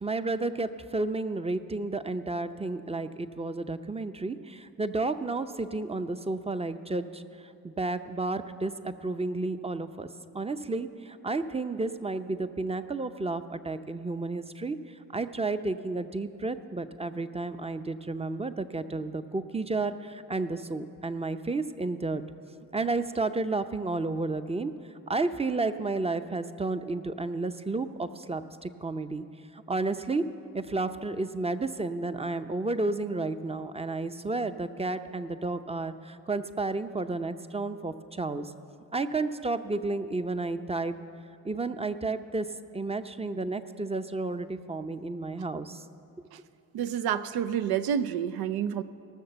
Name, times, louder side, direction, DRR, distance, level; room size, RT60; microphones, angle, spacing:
voice 1, 0.0-7.2 7.6-10.1 10.3-14.8 15.1-22.2 22.7-24.8 25.1-29.2 29.5-30.3 30.5-38.5 38.9-40.9 41.4-42.5 42.7-45.8, right 3 dB, 15° right, 10 dB, 0.6 m, -31 dB
voice 2, 46.7-48.8, right 9 dB, 75° right, 12 dB, 0.6 m, -29 dB
18.0 x 6.5 x 6.9 m, 2.6 s
supercardioid pair, 50°, 38 cm